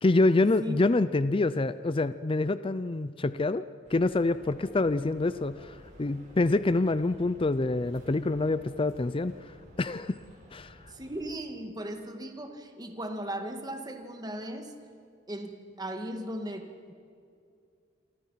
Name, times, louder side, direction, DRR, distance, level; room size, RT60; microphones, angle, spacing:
voice 1, 0.0-10.2 10.5-10.8, left 2 dB, 25° left, 14 dB, 0.5 m, -26 dB
sound 1, 3.8-11.3, equal, 40° right, 7.5 m, -53 dB
voice 2, 10.9-14.7 15.3-16.9, right 1 dB, 20° right, 5 dB, 2.1 m, -37 dB
28.5 x 24.5 x 5.8 m, 2.4 s
head